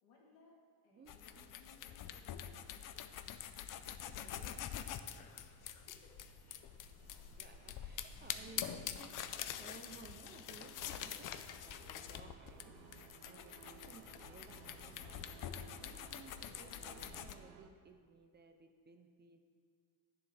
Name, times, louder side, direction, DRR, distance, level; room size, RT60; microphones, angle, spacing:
voice 1, 0.0-0.6 0.8-3.5 5.6-6.0 7.8-8.0 12.5-12.8 16.3-16.6, left 3 dB, 85° left, -4 dB, 3.0 m, -67 dB
voice 2, 0.9-1.5 3.8-4.8 7.4-9.1 9.6-11.3 11.6-15.3 15.8-19.4, right 4 dB, 25° right, 6 dB, 0.5 m, -59 dB
sound 1, 1.1-17.3, left 10 dB, 50° left, 0.5 m, -46 dB
sound 2, 3.7-17.7, right 8 dB, 65° right, 0.8 m, -61 dB
sound 3, 8.2-11.3, left 1 dB, 25° left, 2.4 m, -68 dB
11.5 x 10.5 x 3.4 m, 2.1 s
cardioid pair, 155°, 42 cm